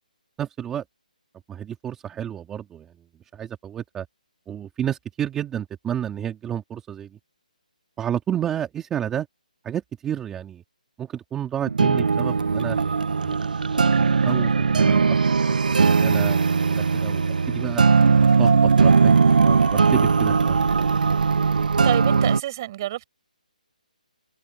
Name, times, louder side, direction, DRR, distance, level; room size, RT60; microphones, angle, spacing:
voice 1, 0.4-0.8 1.5-2.9 3.3-4.1 4.5-7.2 8.0-9.3 9.6-10.6 11.0-12.8 13.2-13.4 13.9-15.2 15.5-16.4 16.7-17.8 18.4-20.7, right 10 dB, 10° right, 2.3 m, -31 dB
sound 1, 11.7-22.4, right 5 dB, 75° right, 1.1 m, -19 dB
voice 2, 21.8-23.1, right 14 dB, 25° right, 8.0 m, -28 dB
hypercardioid pair, 165°, 5 cm